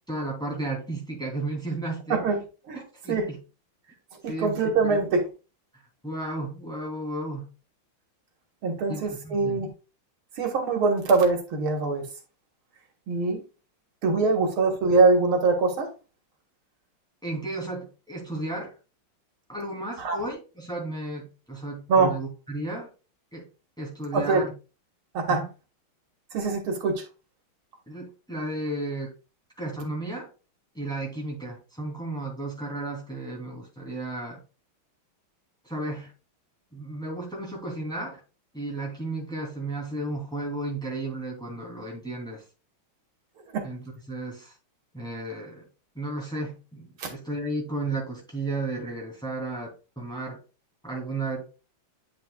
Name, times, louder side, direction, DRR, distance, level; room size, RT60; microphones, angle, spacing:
voice 1, 0.1-2.2 3.0-3.4 4.3-5.0 6.0-7.5 8.9-9.6 14.2-14.3 17.2-18.7 19.5-22.9 23.3-23.5 23.8-24.5 25.3-25.5 27.9-29.1 29.6-30.3 30.7-34.4 35.6-36.1 36.7-38.2 38.5-42.4 43.6-43.8 44.1-44.5 44.9-45.7 45.9-50.4 50.8-51.5, right 2 dB, ahead, 2.8 m, -33 dB
voice 2, 2.1-2.4 2.7-2.8 3.1-3.3 4.2-5.2 8.6-9.7 10.4-12.1 13.1-13.4 14.0-15.9 20.0-20.2 21.9-22.1 24.1-24.4 25.1-25.4 26.3-27.0 43.5-43.7 47.0-47.1, right 4 dB, 85° right, 2.5 m, -23 dB
10.0 x 5.8 x 2.4 m
omnidirectional pair, 2.2 m